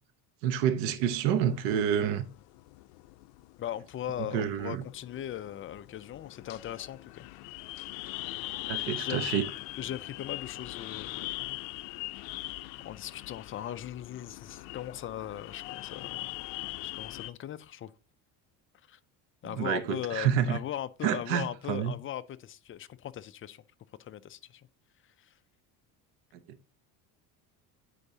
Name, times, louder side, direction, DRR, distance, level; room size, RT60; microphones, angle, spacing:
voice 1, 0.4-2.3 4.3-4.8 8.7-9.5 19.4-20.6 21.0-22.0, right 9 dB, 85° right, 0.9 m, -28 dB
sound 1, 1.4-17.3, left 19 dB, 85° left, 0.5 m, -41 dB
voice 2, 3.6-7.3 8.9-9.4 9.8-11.4 12.8-16.4 16.8-17.9 18.9-19.0 19.4-23.6 24.0-24.7 25.0-25.4, left 11 dB, 30° left, 0.4 m, -39 dB
9.8 x 4.6 x 2.7 m
cardioid pair, 115°, 43 cm